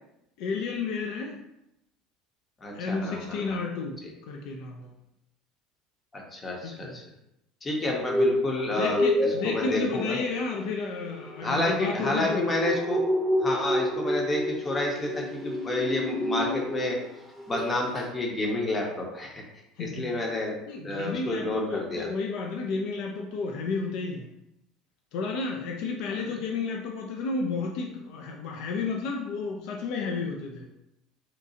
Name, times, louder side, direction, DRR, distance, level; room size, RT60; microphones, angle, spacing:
voice 1, 0.4-1.4 2.7-4.0 4.3-4.9 6.6-7.0 8.7-12.5 19.8-20.1 20.7-24.3 25.1-30.7, left 4 dB, 55° left, 1 dB, 0.3 m, -32 dB
voice 2, 2.6-3.6 6.1-7.0 7.6-10.2 11.4-13.0 13.4-17.0 17.5-19.4 19.8-20.5 20.8-22.1, left 1 dB, 25° left, -1 dB, 0.7 m, -29 dB
sound 1, 7.8-17.1 17.4-17.7 18.0-18.1, left 1 dB, 10° right, 0.8 m, -29 dB
2.8 x 2.3 x 2.7 m, 0.85 s
figure-of-eight pair, 65°, 0 cm